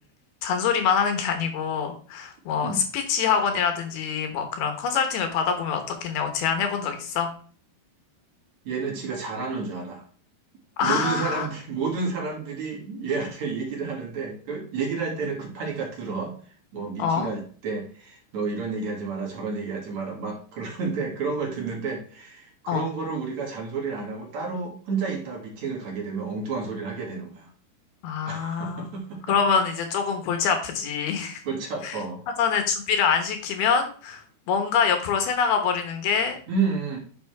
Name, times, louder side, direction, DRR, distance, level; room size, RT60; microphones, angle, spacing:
voice 1, 0.4-7.3 10.8-11.5 17.0-17.3 22.7-22.8 28.0-28.8 29.3-31.4 31.8-32.0 32.4-36.4, left 6 dB, 75° left, 6 dB, 3.0 m, -25 dB
voice 2, 8.6-10.0 10.8-16.3 16.7-27.5 28.3-29.4 31.4-32.2 36.5-37.0, right 4 dB, 50° right, -1 dB, 3.4 m, -30 dB
10.0 x 6.3 x 3.5 m, 0.42 s
omnidirectional pair, 4.7 m